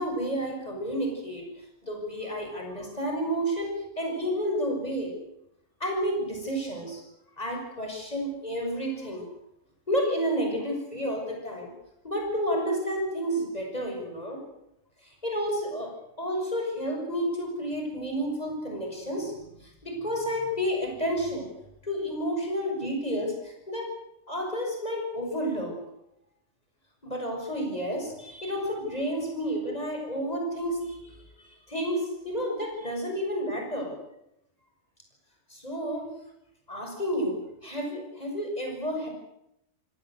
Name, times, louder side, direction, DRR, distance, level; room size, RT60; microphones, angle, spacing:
voice 1, 0.0-1.5 1.8-5.1 5.8-7.0 7.4-9.3 9.9-11.7 12.0-14.4 15.2-15.9 16.2-19.3 19.6-21.5 21.8-23.9 24.3-25.7 27.0-34.0 35.5-36.1 36.7-37.4 37.6-39.1, equal, 30° left, 2 dB, 6.9 m, -30 dB
28.0 x 18.0 x 8.2 m, 0.82 s
omnidirectional pair, 1.3 m